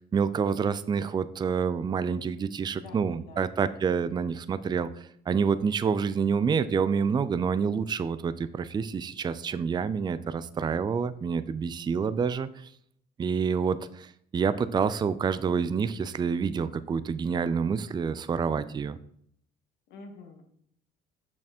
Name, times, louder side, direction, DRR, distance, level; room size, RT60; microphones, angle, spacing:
voice 1, 0.0-12.7 13.2-19.0, right 6 dB, 25° right, 14 dB, 0.4 m, -28 dB
voice 2, 2.7-3.4 19.9-20.4, left 3 dB, 80° left, 4 dB, 1.6 m, -47 dB
6.5 x 6.1 x 4.3 m, 0.68 s
cardioid pair, 110°, 17 cm